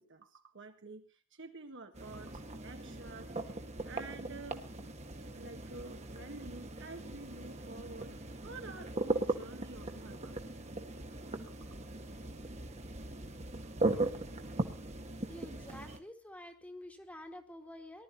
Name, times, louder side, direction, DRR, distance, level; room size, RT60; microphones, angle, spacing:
voice 1, 0.0-3.3 3.8-4.7 5.4-10.4 11.5-11.8, right 3 dB, 55° right, 6 dB, 1.9 m, -49 dB
sound 1, 1.9-16.0, right 2 dB, 30° right, 1.5 m, -39 dB
voice 2, 15.3-18.0, left 1 dB, 5° left, 6 dB, 1.9 m, -49 dB
19.0 x 12.5 x 4.1 m, 0.35 s
head